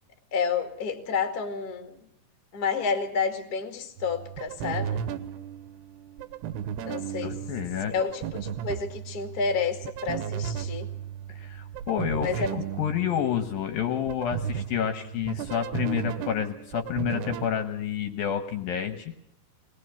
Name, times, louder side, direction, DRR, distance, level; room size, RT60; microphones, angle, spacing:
voice 1, 0.3-2.0 2.5-5.0 6.8-7.3 7.9-10.9 12.2-12.6, left 5 dB, 40° left, 5 dB, 1.4 m, -30 dB
sound 1, 4.0-17.5, right 9 dB, 75° right, 2.9 m, -35 dB
voice 2, 7.2-7.9 11.3-12.4 12.8-19.1, left 9 dB, 70° left, 7 dB, 2.4 m, -29 dB
21.5 x 19.5 x 7.0 m, 0.75 s
omnidirectional pair, 5.2 m